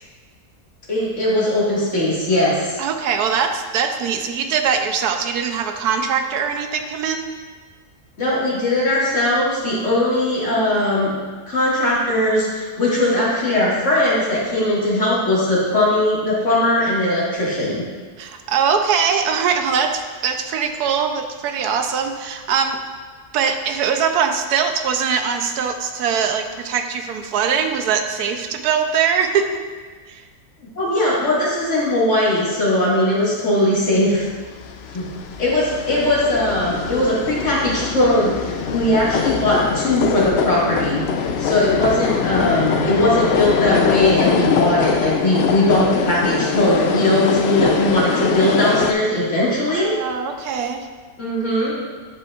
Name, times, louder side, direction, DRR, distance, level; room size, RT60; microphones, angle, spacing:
voice 1, 0.9-2.8 8.2-11.1 11.5-17.8 30.8-34.3 34.9-35.1 35.4-41.1 41.4-49.9 51.2-51.8, left 1 dB, 50° left, -7 dB, 2.2 m, -19 dB
voice 2, 2.8-7.3 18.2-22.8 23.3-29.6 30.1-30.2 49.7-50.9, right 6 dB, 85° right, 6 dB, 1.2 m, -22 dB
sound 1, 34.6-48.9, left 6 dB, 75° left, 0.5 m, -22 dB
10.5 x 5.2 x 2.4 m, 1.5 s
omnidirectional pair, 1.6 m